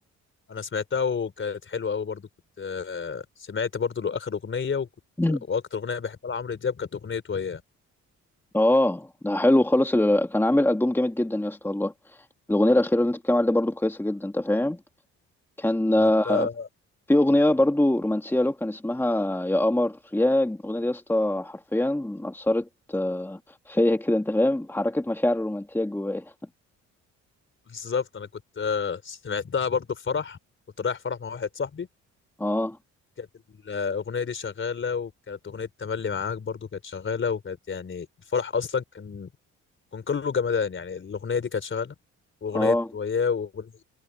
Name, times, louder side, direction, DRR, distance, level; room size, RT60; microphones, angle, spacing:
voice 1, 0.5-2.3 2.6-4.9 5.3-7.6 15.9-16.7 27.7-28.3 28.6-30.4 30.8-31.9 33.2-38.1 38.3-39.3 39.9-41.9 42.4-43.7, left 6 dB, 40° left, 4.2 m, -29 dB
voice 2, 8.5-11.9 12.5-14.8 15.6-16.5 17.1-23.4 23.7-26.3 32.4-32.8 42.5-42.9, left 1 dB, 5° left, 2.0 m, -23 dB
cardioid pair, 90°, 30 cm